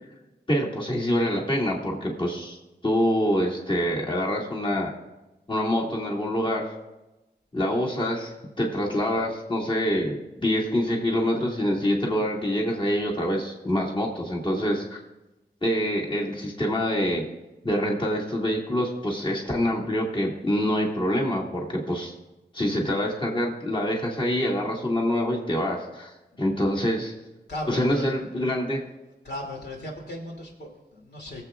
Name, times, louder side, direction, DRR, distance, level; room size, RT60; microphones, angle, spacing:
voice 1, 0.5-2.6 2.8-4.9 5.5-6.7 7.5-15.0 15.6-17.2 17.6-22.1 22.5-27.1 27.7-28.8, equal, 30° left, -3 dB, 2.2 m, -26 dB
voice 2, 27.5-28.2 28.7-28.8 29.2-31.4, left 1 dB, 75° left, -1 dB, 2.7 m, -36 dB
22.0 x 7.6 x 2.5 m, 1.0 s
cardioid pair, 45°, 17 cm